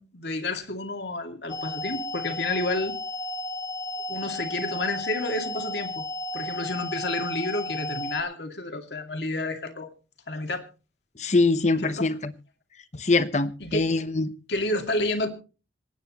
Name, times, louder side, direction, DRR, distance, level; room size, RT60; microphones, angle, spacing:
voice 1, 0.0-3.0 4.1-6.1 6.3-9.9 10.3-10.6 11.8-12.1 13.6-13.9 14.5-15.3, left 2 dB, 65° left, 6 dB, 2.3 m, -30 dB
sound 1, 1.5-8.2, left 1 dB, 20° left, 1.1 m, -33 dB
voice 2, 11.2-12.3 12.9-14.3, left 3 dB, 40° left, 13 dB, 0.9 m, -23 dB
26.5 x 9.3 x 3.0 m, 0.35 s
head